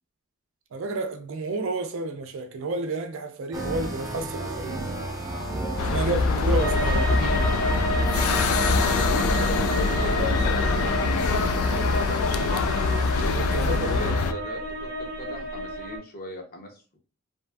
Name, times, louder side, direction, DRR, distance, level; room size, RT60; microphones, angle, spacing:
voice 1, 0.7-4.8 5.9-6.2 6.5-7.5 13.2-13.9, right 2 dB, 65° right, 0.4 m, -30 dB
sound 1, 3.5-14.1, right 1 dB, 15° right, 0.6 m, -32 dB
sound 2, 5.8-14.3, left 4 dB, 90° left, 0.3 m, -24 dB
voice 2, 6.0-7.4 8.1-8.5 8.9-12.7 13.7-17.0, left 1 dB, 45° left, 0.6 m, -38 dB
sound 3, 6.6-16.0, right 1 dB, 75° left, 1.1 m, -31 dB
2.7 x 2.5 x 2.2 m
head